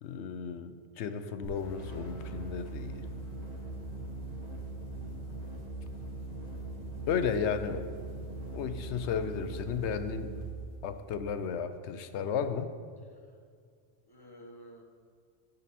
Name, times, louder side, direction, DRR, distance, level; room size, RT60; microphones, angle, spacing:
voice 1, 0.0-3.0 7.1-7.8 8.5-10.3 10.8-12.7, left 6 dB, 80° left, 10 dB, 0.9 m, -34 dB
sound 1, 1.4-10.5, right 2 dB, 35° right, 1.9 m, -41 dB
voice 2, 7.5-7.9 14.1-14.8, equal, 20° left, 0 dB, 1.2 m, -52 dB
16.0 x 5.4 x 4.2 m, 2.1 s
omnidirectional pair, 1.2 m